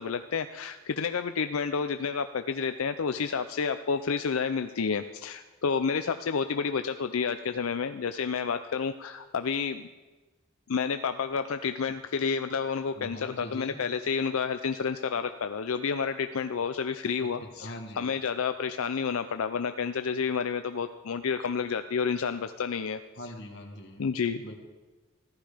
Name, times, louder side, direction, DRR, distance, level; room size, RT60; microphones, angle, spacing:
voice 1, 0.0-9.9 10.7-23.0 24.0-24.4, left 6 dB, 90° left, 9 dB, 0.5 m, -30 dB
voice 2, 13.0-13.8 17.2-18.1 23.2-24.0 24.4-24.5, left 1 dB, 55° left, 3 dB, 1.9 m, -42 dB
14.5 x 12.5 x 5.0 m, 1.2 s
head